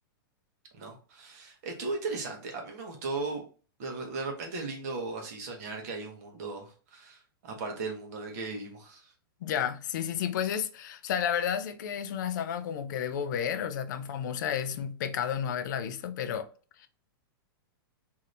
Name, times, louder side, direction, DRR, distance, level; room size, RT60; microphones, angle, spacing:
voice 1, 0.7-3.4 3.8-9.1, right 3 dB, 45° right, 1.0 m, -37 dB
voice 2, 9.4-16.5 16.8-16.9, left 8 dB, 55° left, 0.4 m, -31 dB
2.7 x 2.7 x 3.1 m
supercardioid pair, 165°, 12 cm